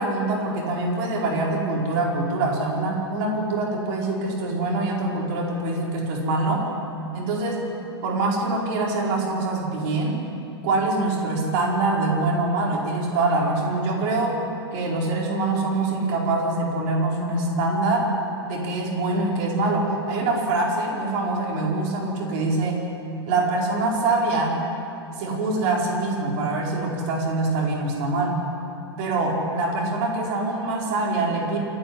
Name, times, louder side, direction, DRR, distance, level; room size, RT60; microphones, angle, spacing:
voice 1, 0.0-6.7 7.1-7.7 8.0-10.2 10.6-14.4 14.7-18.1 18.5-22.8 23.3-24.6 25.1-28.4 29.0-31.6, right 2 dB, 45° right, -2 dB, 5.1 m, -24 dB
27.5 x 9.8 x 9.9 m, 2.7 s
figure-of-eight pair, 105°, 14 cm